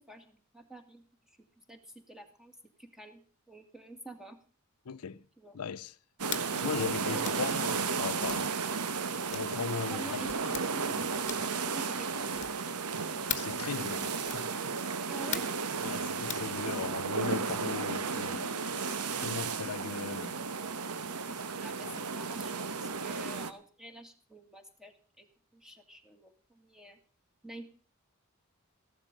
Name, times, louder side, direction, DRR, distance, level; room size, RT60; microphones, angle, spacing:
voice 1, 0.0-3.2 3.5-4.4 5.4-5.6 6.5-7.6 9.9-11.0 11.5-12.4 15.1-15.5 21.6-25.3 25.5-27.0 27.4-27.6, right 1 dB, ahead, 1.9 m, -48 dB
voice 2, 4.9-5.2 5.5-5.9 6.6-8.5 9.3-10.2 10.9-11.1 11.4-11.5 13.4-14.5 14.8-15.1 15.8-19.0 19.2-20.4 21.8-22.0, left 6 dB, 80° left, 0.6 m, -38 dB
sound 1, 6.2-23.5, right 5 dB, 90° right, 1.1 m, -34 dB
sound 2, 6.3-6.5 7.2-7.4 8.2-8.5 9.3-9.5 10.3-10.7 11.2-11.6 12.3-12.6 13.3-13.6 14.2-14.5 15.3-15.6 16.3-16.5, left 10 dB, 35° left, 1.3 m, -38 dB
15.0 x 12.0 x 5.2 m
head